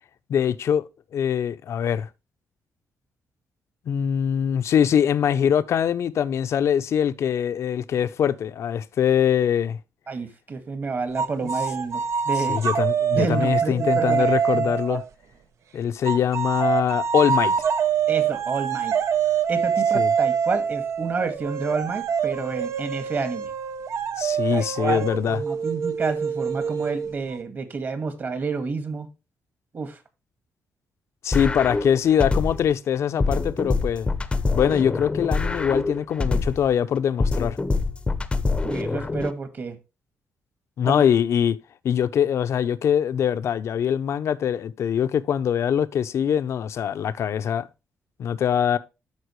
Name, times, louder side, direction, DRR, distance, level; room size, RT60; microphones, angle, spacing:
voice 1, 0.3-2.1 3.9-9.8 12.4-15.0 15.7-17.5 19.9-20.1 24.2-25.4 31.2-34.1 34.5-37.6 40.8-41.6 41.8-47.7 48.2-48.8, left 8 dB, 65° left, 0.7 m, -23 dB
voice 2, 10.1-12.6 13.1-15.0 18.1-18.9 19.5-23.5 24.5-29.1 29.7-30.0 38.6-39.8 40.8-41.0, right 4 dB, 40° right, 1.8 m, -29 dB
sound 1, 11.2-15.1 16.1-27.4, right 7 dB, 70° right, 0.8 m, -25 dB
sound 2, 31.3-32.7 33.2-36.7 37.2-39.3, left 3 dB, 20° left, 0.7 m, -25 dB
13.0 x 4.6 x 3.1 m
cardioid pair, 125°, 5 cm